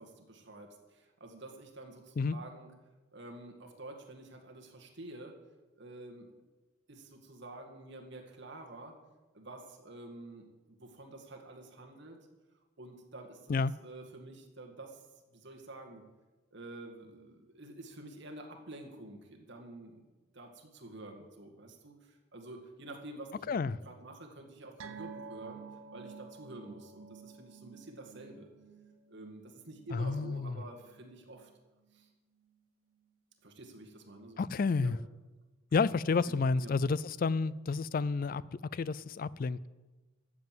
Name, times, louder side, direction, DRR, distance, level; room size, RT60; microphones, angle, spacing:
voice 1, 0.0-2.7 3.1-5.4 5.8-6.3 6.9-9.0 9.3-12.2 12.8-13.5 13.8-15.1 15.3-16.1 16.5-20.1 20.3-23.5 23.8-25.6 25.9-28.5 29.1-31.5 31.9-32.1 33.4-34.4 34.8-34.9 36.6-36.7, right 2 dB, 55° right, 1.9 m, -49 dB
sound 1, 24.8-31.6 31.9-32.1 32.5-32.6, right 5 dB, 70° right, 0.8 m, -51 dB
voice 2, 29.9-30.6 34.4-35.0 35.7-38.4 38.7-39.7, left 4 dB, 40° left, 0.3 m, -30 dB
13.0 x 7.7 x 7.6 m
head